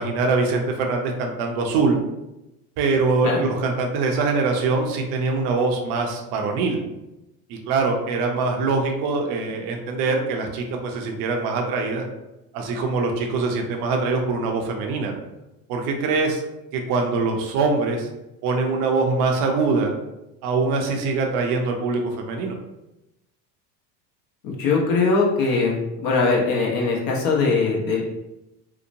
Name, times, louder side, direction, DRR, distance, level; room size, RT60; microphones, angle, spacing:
voice 1, 0.0-2.0 2.8-6.8 7.5-12.0 12.5-15.1 15.7-16.4 16.7-18.1 18.4-19.9 20.4-22.6, right 3 dB, 55° right, 2 dB, 0.6 m, -23 dB
voice 2, 24.4-25.7 26.0-28.0, left 4 dB, 45° left, -2 dB, 0.8 m, -21 dB
2.8 x 2.1 x 2.6 m, 0.95 s
supercardioid pair, 105°, 48 cm